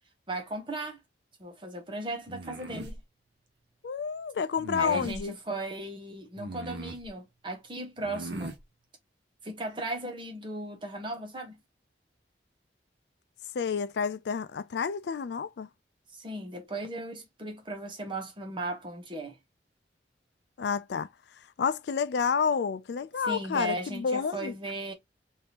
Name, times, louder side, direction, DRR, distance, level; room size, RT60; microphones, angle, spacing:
voice 1, 0.3-1.0 1.4-3.0 4.8-8.5 9.4-11.6 16.1-19.4 23.2-24.9, right 1 dB, 30° right, 1.1 m, -36 dB
sound 1, 2.3-3.0 4.6-5.2 6.4-7.1 8.0-8.6, right 2 dB, 85° right, 0.8 m, -39 dB
voice 2, 3.8-5.3 13.5-15.7 20.6-21.1 21.6-24.5, left 6 dB, 70° left, 0.4 m, -29 dB
3.5 x 2.7 x 2.8 m
head